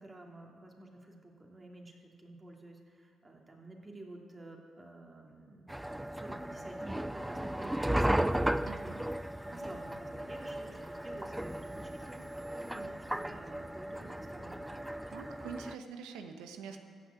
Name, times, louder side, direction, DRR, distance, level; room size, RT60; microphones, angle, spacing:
voice 1, 0.0-8.9 9.4-14.8, right 2 dB, 30° right, 0 dB, 2.8 m, -51 dB
sound 1, 5.7-15.7, right 1 dB, 5° right, 0.4 m, -35 dB
sound 2, 8.1-13.2, left 1 dB, 15° left, 3.1 m, -65 dB
voice 2, 8.7-9.0 15.0-16.8, right 6 dB, 85° right, 6 dB, 1.0 m, -45 dB
15.0 x 6.0 x 8.4 m, 2.5 s
supercardioid pair, 50°, 0 cm